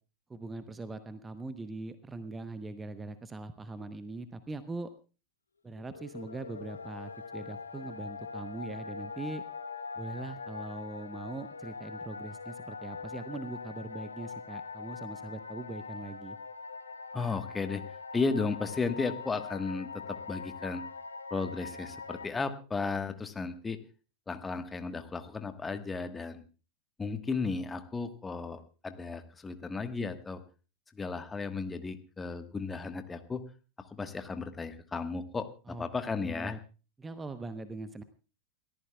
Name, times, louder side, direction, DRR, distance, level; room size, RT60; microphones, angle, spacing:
voice 1, 0.3-4.9 5.6-9.4 10.0-16.4 35.7-35.9 36.2-36.6 37.0-38.0, right 3 dB, 15° right, 12 dB, 0.9 m, -41 dB
sound 1, 5.8-22.3, left 5 dB, 75° left, 1.1 m, -43 dB
voice 2, 17.1-17.8 18.1-20.8 21.3-23.8 24.3-26.4 27.0-30.4 31.0-33.4 33.8-36.6, left 4 dB, 15° left, 9 dB, 1.4 m, -34 dB
29.0 x 14.0 x 2.3 m, 0.34 s
figure-of-eight pair, 90°, 0 cm